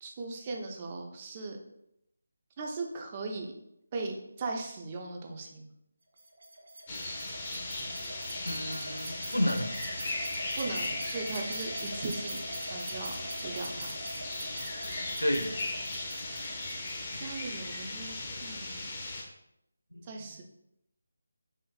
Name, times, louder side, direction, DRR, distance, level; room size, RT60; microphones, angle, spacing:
voice 1, 0.0-1.6 2.6-3.5 3.9-5.7 10.6-12.4 12.7-13.1 13.4-13.9 17.1-18.9 20.0-20.4, right 3 dB, 25° right, 2 dB, 0.4 m, -38 dB
sound 1, 6.2-17.2, right 1 dB, 55° right, 0.7 m, -43 dB
sound 2, 6.9-19.2, left 2 dB, 25° left, 0.5 m, -37 dB
voice 2, 8.4-9.7 15.2-15.5 19.9-20.1, equal, 90° left, 4 dB, 0.5 m, -31 dB
3.7 x 2.5 x 2.4 m, 0.80 s
figure-of-eight pair, 155°, 0 cm